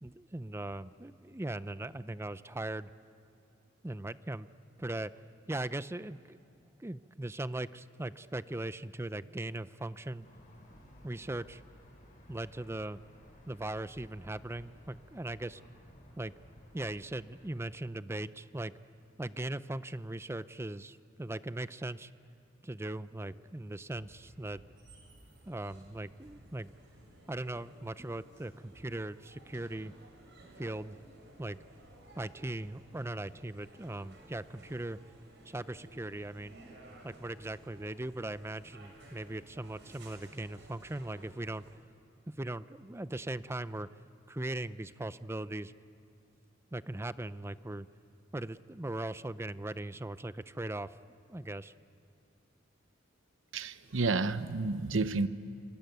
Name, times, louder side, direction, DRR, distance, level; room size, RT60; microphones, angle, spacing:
voice 1, 0.0-2.9 3.8-4.5 4.8-5.1 5.5-6.4 6.8-10.3 11.0-11.6 12.3-13.0 13.5-15.6 16.2-16.3 16.7-18.7 19.2-22.1 22.6-24.6 25.5-26.7 27.3-30.0 30.6-31.0 31.4-31.6 32.2-35.0 35.5-36.6 37.0-41.6 42.4-43.9 44.3-45.7 46.7-47.9 48.3-50.9 51.3-51.7, right 1 dB, 15° right, 15 dB, 0.6 m, -39 dB
sound 1, 10.2-17.5, equal, 45° left, 5.6 m, -57 dB
sound 2, 23.9-41.7, right 1 dB, 65° right, 6.0 m, -56 dB
voice 2, 53.5-55.3, right 3 dB, 90° right, 12 dB, 0.8 m, -30 dB
26.0 x 24.0 x 9.4 m, 2.5 s
head